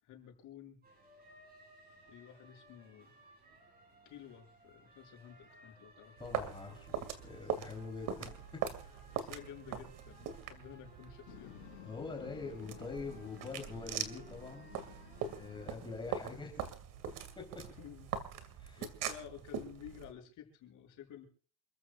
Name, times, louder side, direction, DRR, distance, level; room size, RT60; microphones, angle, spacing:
voice 1, 0.0-0.8 2.1-3.1 4.0-6.1 9.1-11.8 17.8-18.1 18.8-21.3, left 9 dB, 45° left, 2 dB, 6.7 m, -52 dB
sound 1, 0.8-15.7, right 1 dB, 20° right, 7.3 m, -61 dB
voice 2, 6.2-7.0 7.2-8.4 8.8-8.9 11.8-15.0 15.3-16.7 17.4-17.5 18.5-18.8, left 4 dB, 10° left, 1 dB, 3.6 m, -44 dB
sound 2, 6.2-20.1, right 8 dB, 50° right, 2.4 m, -42 dB
sound 3, 11.3-16.6, left 18 dB, 80° left, 3.3 m, -55 dB
28.5 x 14.0 x 2.4 m, 0.42 s
cardioid pair, 165°, 42 cm